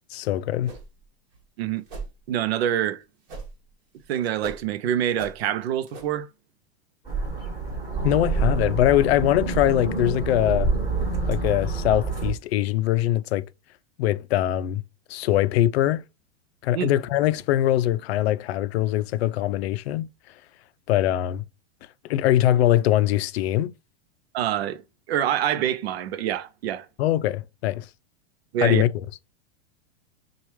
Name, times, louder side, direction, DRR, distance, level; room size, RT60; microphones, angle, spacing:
voice 1, 0.1-0.7 8.0-10.7 11.2-13.4 14.0-14.8 15.1-16.0 16.6-20.1 20.9-21.4 22.1-23.7 27.0-27.9 28.6-28.9, left 13 dB, 70° left, 0.5 m, -22 dB
sound 1, 0.6-1.1 1.3-1.4 1.9-2.1 3.3-3.7 4.0-4.7 5.2-5.4 5.9-6.1, right 3 dB, 40° right, 1.5 m, -38 dB
voice 2, 2.3-3.0 4.1-6.3 16.7-16.9 24.3-24.8 25.1-26.9 28.5-28.8, right 10 dB, 65° right, 0.6 m, -26 dB
sound 2, 7.1-12.3, right 3 dB, 10° right, 2.0 m, -27 dB
6.1 x 2.4 x 3.2 m
supercardioid pair, 165°, 33 cm